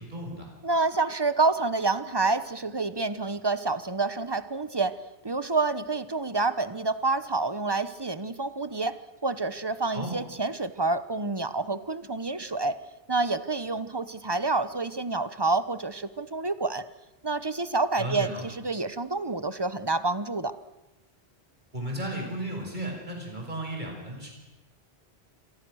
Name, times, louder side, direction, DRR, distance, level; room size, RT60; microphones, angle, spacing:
voice 1, 0.0-0.5 9.9-10.1 18.0-18.4 21.7-24.3, right 1 dB, 45° right, 1 dB, 5.8 m, -34 dB
voice 2, 0.6-4.9 5.2-9.0 9.2-12.8 13.1-16.8 17.2-20.5, right 3 dB, 25° right, 13 dB, 1.0 m, -28 dB
27.5 x 23.0 x 6.4 m, 1.0 s
omnidirectional pair, 1.1 m